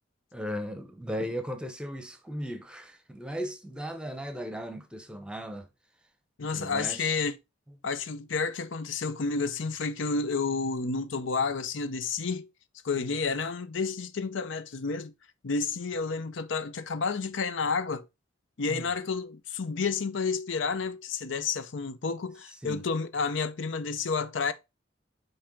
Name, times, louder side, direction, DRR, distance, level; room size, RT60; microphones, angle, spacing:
voice 1, 0.3-5.7 6.5-7.0 13.0-13.1 18.6-18.9 22.6-22.8, equal, 5° right, 0.8 m, -37 dB
voice 2, 6.4-7.4 7.8-12.5 12.8-15.1 15.4-18.1 18.6-24.5, left 4 dB, 75° left, 0.6 m, -30 dB
8.8 x 3.4 x 3.7 m
head